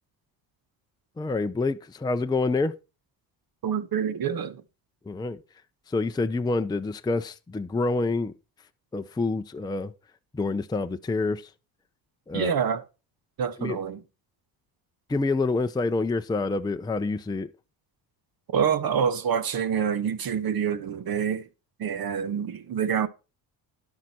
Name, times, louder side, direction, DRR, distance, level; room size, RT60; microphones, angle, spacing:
voice 1, 1.2-2.7 5.1-5.4 5.9-8.3 8.9-9.9 10.3-11.5 12.3-12.5 13.6-13.8 15.1-17.5, left 3 dB, 10° left, 0.6 m, -27 dB
voice 2, 3.6-4.6 12.3-12.8 13.4-14.0 18.5-21.5 21.8-23.1, right 7 dB, 50° right, 1.0 m, -26 dB
10.5 x 7.3 x 4.2 m
supercardioid pair, 70°, 47 cm